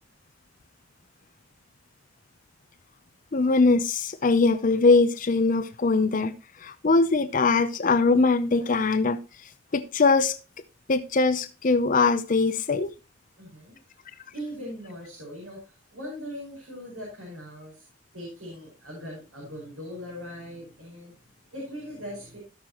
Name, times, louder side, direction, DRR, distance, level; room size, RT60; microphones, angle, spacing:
voice 1, 3.3-6.3 6.6-9.2 9.7-10.4 10.9-12.9, left 3 dB, 40° left, 0.6 m, -22 dB
voice 2, 13.4-13.8 14.3-17.9 18.1-22.4, equal, 85° right, 5.4 m, -40 dB
16.5 x 6.4 x 2.9 m
head